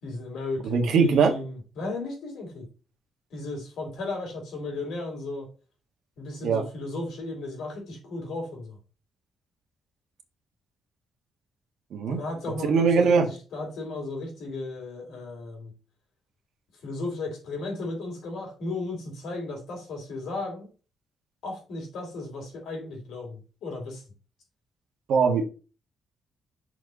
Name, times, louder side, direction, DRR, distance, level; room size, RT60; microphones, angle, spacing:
voice 1, 0.0-2.7 3.3-5.5 6.2-8.8 12.1-15.7 16.8-20.7 21.4-24.0, left 2 dB, 65° left, 1 dB, 4.1 m, -35 dB
voice 2, 0.6-1.3 6.4-6.6 11.9-12.2 12.7-13.3 25.1-25.4, right 5 dB, 65° right, 4 dB, 1.5 m, -21 dB
6.3 x 4.6 x 5.4 m, 0.34 s
cardioid pair, 175°, 0 cm